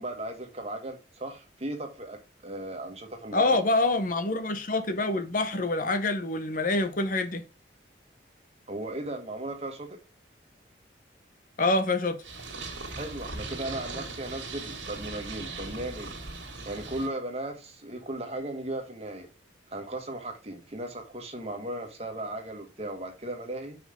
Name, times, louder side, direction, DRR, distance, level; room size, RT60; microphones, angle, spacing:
voice 1, 0.0-3.6 8.7-10.0 12.9-16.1 16.6-19.3 19.7-23.8, right 1 dB, 35° right, 1.6 m, -36 dB
voice 2, 3.3-7.4 11.6-12.2, left 2 dB, 45° left, 0.9 m, -26 dB
Purr, 12.2-17.1, right 3 dB, 85° right, 2.2 m, -39 dB
5.8 x 5.2 x 4.9 m
head